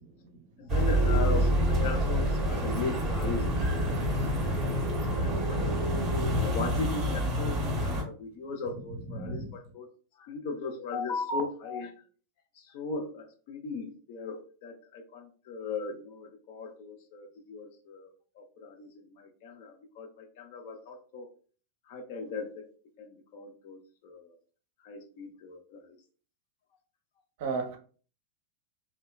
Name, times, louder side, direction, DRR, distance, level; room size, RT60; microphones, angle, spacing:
voice 1, 0.6-5.7 6.2-9.9 10.2-11.9 12.6-18.1 18.4-21.3 21.9-22.7 23.0-24.4 24.8-26.0, left 4 dB, 50° left, 4 dB, 0.5 m, -38 dB
sound 1, 0.7-8.0, equal, 25° right, 0.9 m, -27 dB
voice 2, 9.2-9.5 27.4-27.8, right 4 dB, 50° right, 4 dB, 0.5 m, -33 dB
2.8 x 2.2 x 2.2 m, 0.40 s
figure-of-eight pair, 90°, 0 cm